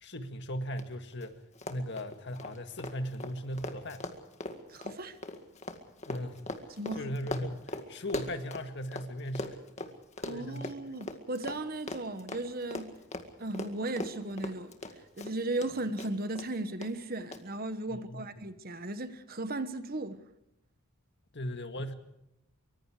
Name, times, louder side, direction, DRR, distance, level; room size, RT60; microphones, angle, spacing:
voice 1, 0.0-1.4 1.7-4.1 6.1-6.4 7.0-10.0 10.3-10.9 17.9-18.3 21.3-21.9, equal, 50° left, 1.9 m, -38 dB
Run, 0.8-0.9 1.1-1.3 1.6-9.1 9.4-15.7 16.0-16.5 16.8-16.9 17.3-17.4, left 2 dB, 30° left, 2.0 m, -39 dB
voice 2, 4.7-5.2 6.8-7.1 10.2-12.9 13.4-14.7 15.2-20.2, right 2 dB, 40° right, 1.3 m, -36 dB
24.5 x 24.0 x 5.0 m
head